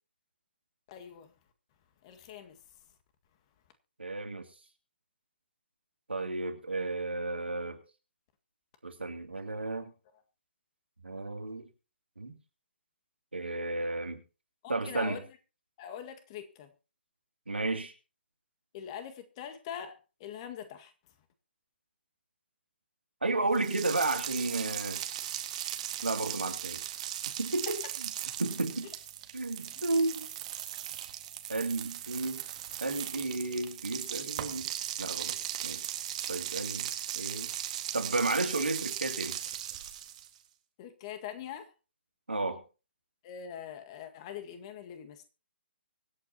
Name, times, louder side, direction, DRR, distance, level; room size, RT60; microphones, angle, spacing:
voice 1, 0.9-1.3 2.0-2.6 14.6-15.2 15.8-16.7 18.7-20.9 29.8-29.9 40.8-41.7 43.2-45.2, left 9 dB, 30° left, 7 dB, 1.8 m, -43 dB
voice 2, 4.0-4.4 6.1-7.8 8.8-9.9 11.0-11.7 12.2-12.3 13.3-14.2 14.7-15.2 17.5-17.9 23.2-25.0 26.0-26.9 27.4-28.1 28.4-28.9 29.3-30.3 31.5-32.4 32.8-34.7 35.0-35.4 35.6-35.8 36.3-36.9 37.2-37.5 37.9-39.4 42.3-42.6, right 2 dB, 80° right, 4 dB, 2.7 m, -32 dB
sound 1, 23.5-40.4, right 11 dB, 40° right, 1.7 m, -38 dB
24.5 x 8.6 x 2.9 m, 0.34 s
figure-of-eight pair, 135°, 6 cm